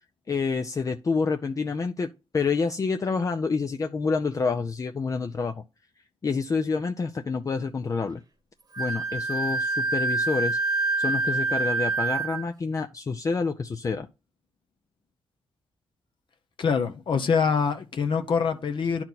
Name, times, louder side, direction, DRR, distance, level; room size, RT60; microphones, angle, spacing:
voice 1, 0.3-5.6 6.2-8.2 8.8-10.6 11.0-14.1, left 4 dB, 35° left, 0.6 m, -28 dB
Wind instrument woodwind instrument, 8.7-12.5, right 3 dB, 40° right, 1.2 m, -26 dB
voice 2, 16.6-19.0, left 6 dB, 55° left, 0.9 m, -25 dB
10.0 x 4.4 x 4.0 m
cardioid pair, 85°, 10 cm